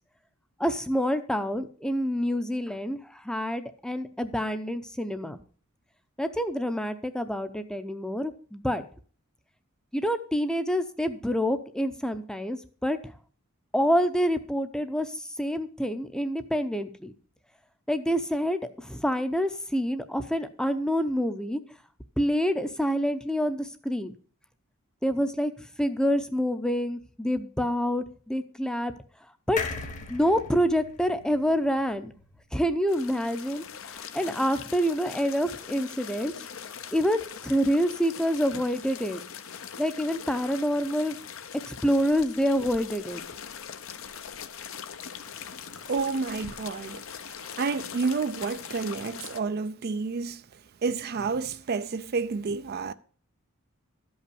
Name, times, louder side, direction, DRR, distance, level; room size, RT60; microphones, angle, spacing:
voice 1, 0.6-5.4 6.2-8.8 9.9-13.1 13.7-17.1 17.9-21.6 22.2-24.1 25.0-28.9 29.5-29.6 30.0-32.1 32.5-36.3 36.9-39.2 39.8-41.2 41.6-43.2, equal, 5° left, 0.6 m, -27 dB
sound 1, 29.6-33.0 33.4-33.5 33.7-33.8, left 4 dB, 35° left, 1.1 m, -39 dB
sound 2, 32.9-49.4, left 7 dB, 65° left, 0.8 m, -41 dB
voice 2, 45.9-47.1 47.6-50.4 50.8-52.9, right 4 dB, 45° right, 0.4 m, -30 dB
13.0 x 5.6 x 6.8 m
head